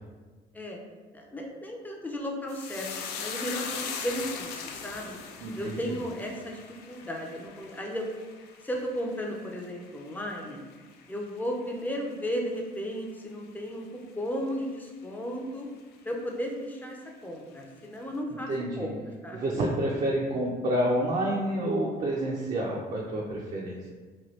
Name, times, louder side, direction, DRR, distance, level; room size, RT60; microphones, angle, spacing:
voice 1, 1.1-5.2 5.5-6.6 6.9-8.1 8.6-10.6 11.1-15.7 16.0-18.5 18.8-18.9 19.2-19.4, equal, 10° left, 0 dB, 0.4 m, -34 dB
sound 1, 2.5-11.1 11.4-12.1 12.3-12.6, left 6 dB, 80° left, 0.4 m, -40 dB
voice 2, 5.4-5.8 18.3-18.9 19.3-23.8, right 1 dB, 45° right, -2 dB, 0.4 m, -29 dB
2.9 x 2.2 x 3.0 m, 1.4 s
cardioid pair, 110°, 17 cm